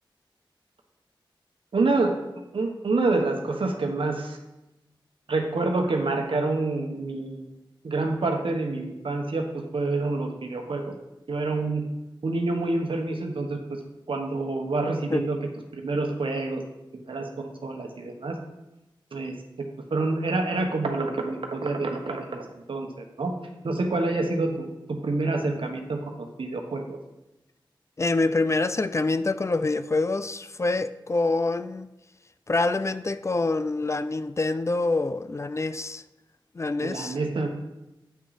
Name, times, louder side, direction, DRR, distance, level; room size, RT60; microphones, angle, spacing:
voice 1, 1.7-2.2 2.5-4.4 5.3-7.4 7.8-9.4 9.7-10.8 11.3-11.8 12.2-13.8 14.1-15.4 15.7-16.6 16.9-18.4 19.1-19.4 19.9-23.3 23.6-24.7 25.0-27.0 36.8-37.5, right 3 dB, 85° right, 1.2 m, -27 dB
voice 2, 28.0-31.9 32.5-36.0 36.5-37.2, left 3 dB, 35° left, 0.4 m, -26 dB
8.7 x 5.9 x 4.2 m
wide cardioid pair, 80°, 9 cm